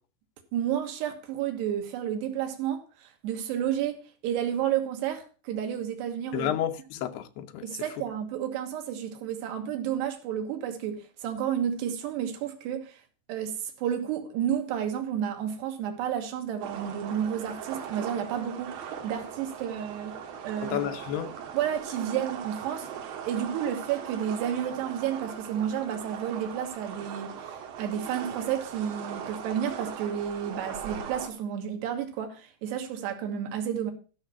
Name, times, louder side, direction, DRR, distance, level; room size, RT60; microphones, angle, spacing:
voice 1, 0.5-6.5 7.6-13.0 13.3-20.2 20.4-20.9 21.5-33.9, right 9 dB, 80° right, 3.4 m, -31 dB
voice 2, 6.3-7.6 20.6-21.3, left 11 dB, 75° left, 2.7 m, -31 dB
sound 1, 16.6-31.3, right 8 dB, 65° right, 2.8 m, -39 dB
13.0 x 5.9 x 5.5 m
omnidirectional pair, 4.9 m